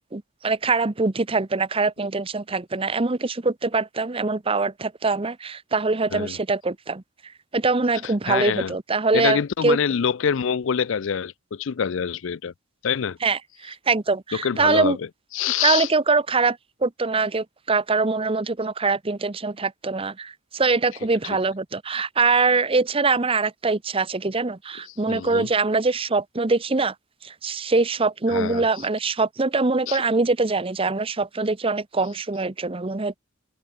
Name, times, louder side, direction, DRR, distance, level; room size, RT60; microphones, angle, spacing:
voice 1, 0.1-9.8 13.2-15.0 15.6-26.9 27.2-33.1, right 3 dB, 25° right, 0.8 m, -23 dB
voice 2, 8.0-8.7 9.1-12.5 12.8-13.2 14.4-15.0 15.3-15.9 25.1-25.5 28.3-28.6 29.9-30.0, left 7 dB, 70° left, 0.5 m, -25 dB
head